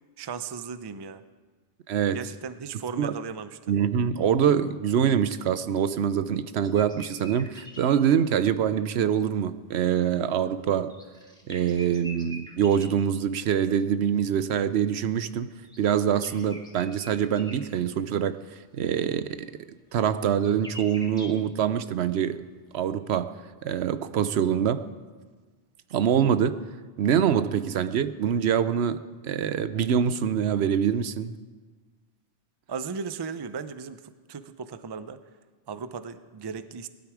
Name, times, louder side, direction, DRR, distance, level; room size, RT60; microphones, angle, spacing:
voice 1, 0.2-1.2 2.1-3.7 32.7-35.2 35.7-36.9, right 5 dB, 35° right, 0.4 m, -36 dB
voice 2, 3.7-10.9 11.5-15.5 15.8-18.4 18.7-19.5 19.9-22.4 22.7-23.3 23.6-24.9 25.9-26.7 27.0-31.3, right 8 dB, 80° right, 0.9 m, -25 dB
sound 1, 6.6-7.9 8.8-8.9 10.8-13.0 15.5-17.6 17.9-18.0 19.5-19.6 20.0-21.3, equal, 5° left, 1.9 m, -45 dB
19.0 x 12.0 x 4.9 m
omnidirectional pair, 1.1 m